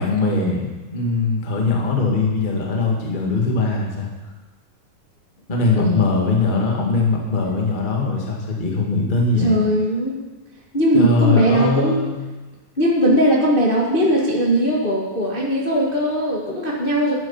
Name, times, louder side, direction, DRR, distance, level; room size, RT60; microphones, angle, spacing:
voice 1, 0.0-4.1 5.5-9.6 10.9-12.2, left 3 dB, 20° left, -1 dB, 1.5 m, -21 dB
voice 2, 9.4-10.2 10.7-12.0 12.8-17.1, equal, 85° left, -3 dB, 0.4 m, -19 dB
11.5 x 11.0 x 5.6 m, 1.2 s
omnidirectional pair, 3.9 m